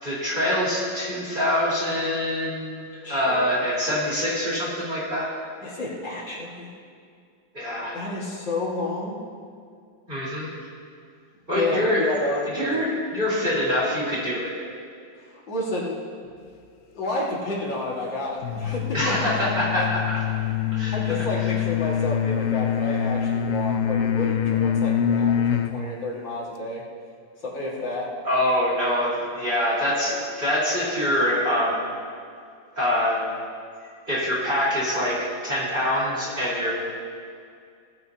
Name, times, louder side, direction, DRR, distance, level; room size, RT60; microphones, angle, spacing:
voice 1, 0.0-5.3 7.5-8.0 10.1-10.5 11.5-12.1 12.5-14.5 18.9-20.0 20.7-21.0 28.2-31.8 32.8-33.3 34.1-36.7, left 1 dB, 25° right, -7 dB, 4.3 m, -24 dB
voice 2, 3.0-3.5 5.6-6.7 7.9-9.2 11.5-12.9 15.2-16.0 16.9-19.3 19.8-19.9 20.9-26.8 27.4-28.1, left 2 dB, 65° left, -5 dB, 2.7 m, -30 dB
sound 1, 18.4-25.8, left 9 dB, 85° left, 0.7 m, -25 dB
18.0 x 15.0 x 2.9 m, 2.3 s
omnidirectional pair, 2.2 m